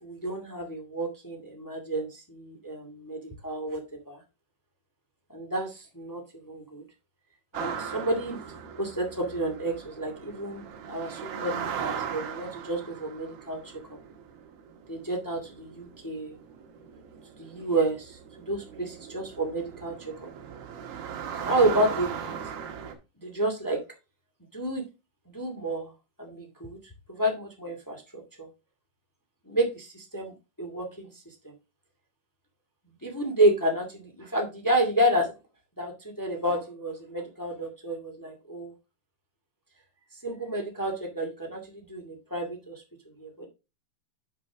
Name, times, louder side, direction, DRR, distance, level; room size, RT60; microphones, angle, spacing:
voice 1, 0.0-3.8 4.1-4.2 5.3-6.8 7.5-8.4 8.8-13.6 14.9-16.3 17.4-18.2 18.5-19.9 20.2-20.3 21.4-22.5 23.2-23.8 24.5-24.8 25.3-25.9 26.2-26.8 27.1-28.0 28.4-28.5 29.5-31.1 33.0-35.3 35.8-38.7 40.2-42.8 43.2-43.5, right 1 dB, 20° left, 1 dB, 0.5 m, -30 dB
sound 1, 7.5-22.9, right 7 dB, 80° right, 3.3 m, -38 dB
9.5 x 5.5 x 3.5 m, 0.28 s
omnidirectional pair, 4.3 m